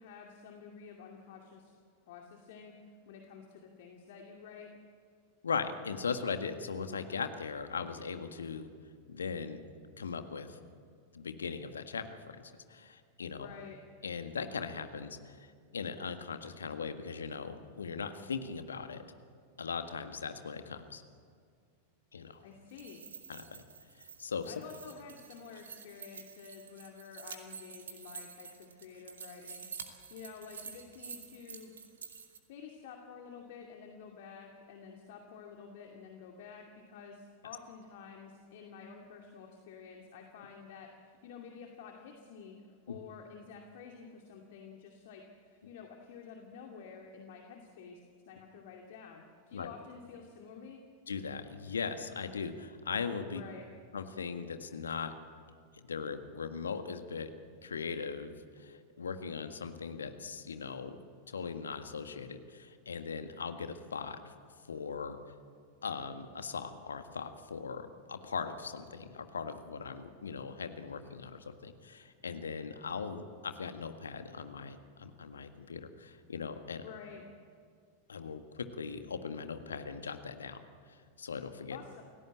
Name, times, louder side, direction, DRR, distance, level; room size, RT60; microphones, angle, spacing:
voice 1, 0.0-1.8 2.1-4.7 13.4-13.8 22.4-23.0 24.5-29.7 30.1-31.7 32.5-50.8 53.3-53.7 76.8-77.2 81.7-82.0, left 6 dB, 55° left, 2 dB, 2.5 m, -50 dB
voice 2, 5.4-8.7 9.1-9.6 10.0-10.6 11.1-13.5 14.0-19.0 19.6-21.0 22.1-22.4 23.3-23.6 24.0-24.5 42.9-43.0 49.5-49.7 51.1-53.4 53.9-55.1 55.7-57.3 57.6-61.0 61.3-64.3 64.7-65.2 65.8-76.8 78.1-80.6 80.9-81.8, left 5 dB, 70° left, 8 dB, 1.7 m, -39 dB
sound 1, 22.6-32.4, right 6 dB, 70° right, 2.6 m, -49 dB
28.5 x 17.0 x 8.7 m, 2.1 s
figure-of-eight pair, 90°, 0 cm